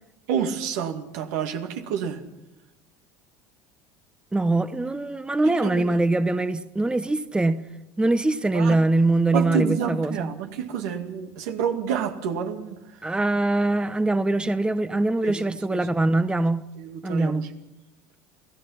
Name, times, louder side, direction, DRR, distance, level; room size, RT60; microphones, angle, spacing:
voice 1, 0.3-2.2 5.6-6.0 8.5-8.8 9.3-12.8 15.2-15.3 15.7-15.8 16.8-17.5, right 7 dB, 75° right, 2.2 m, -28 dB
voice 2, 4.3-7.6 8.0-10.3 13.0-16.6 17.0-17.5, right 2 dB, 10° right, 1.0 m, -23 dB
29.0 x 17.0 x 5.8 m
hypercardioid pair, 80°, 9 cm